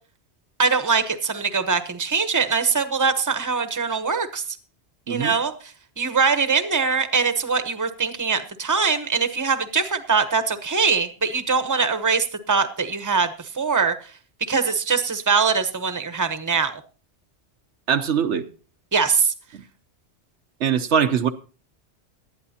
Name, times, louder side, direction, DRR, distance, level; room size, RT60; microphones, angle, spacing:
voice 1, 0.6-4.4 5.1-5.5 6.0-13.9 14.5-16.8 18.9-19.3, right 5 dB, 20° right, 0.9 m, -22 dB
voice 2, 17.9-18.5 19.5-19.6 20.6-21.3, right 8 dB, 80° right, 1.1 m, -22 dB
18.5 x 12.0 x 2.8 m
omnidirectional pair, 1.2 m